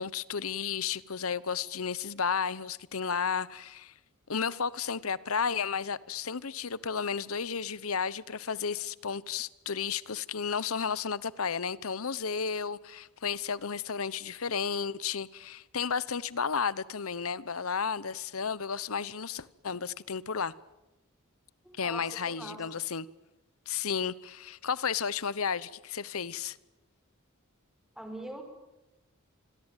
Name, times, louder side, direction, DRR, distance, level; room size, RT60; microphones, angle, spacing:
voice 1, 0.0-3.9 4.3-20.5 21.7-23.1 23.7-26.6, left 6 dB, 80° left, 1.0 m, -33 dB
voice 2, 21.6-22.6 28.0-28.4, right 1 dB, ahead, 5.3 m, -42 dB
27.5 x 22.5 x 9.1 m
head